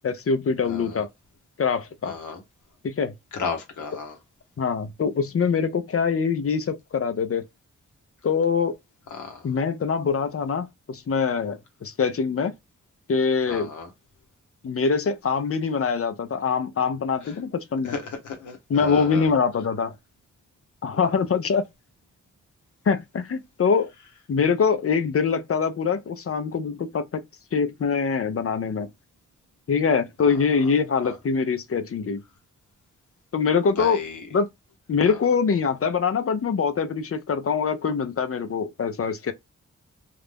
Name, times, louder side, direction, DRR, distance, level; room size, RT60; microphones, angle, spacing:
voice 1, 0.0-1.1 1.6-2.1 2.8-3.1 4.6-7.4 8.2-8.7 9.4-12.5 13.1-13.7 14.6-17.9 18.7-19.9 20.8-21.6 22.9-23.9 24.3-27.2 27.5-28.9 29.7-32.2 33.3-34.0 34.3-34.5 34.9-39.3, left 5 dB, 50° left, 0.6 m, -24 dB
voice 2, 0.6-1.0 2.0-2.4 3.3-4.2 9.1-9.5 13.5-13.9 17.2-17.3 17.8-19.3 31.0-31.2 33.8-34.2 35.0-35.2, left 5 dB, 80° left, 0.8 m, -34 dB
2.4 x 2.0 x 3.3 m
cardioid pair, 50°, 30 cm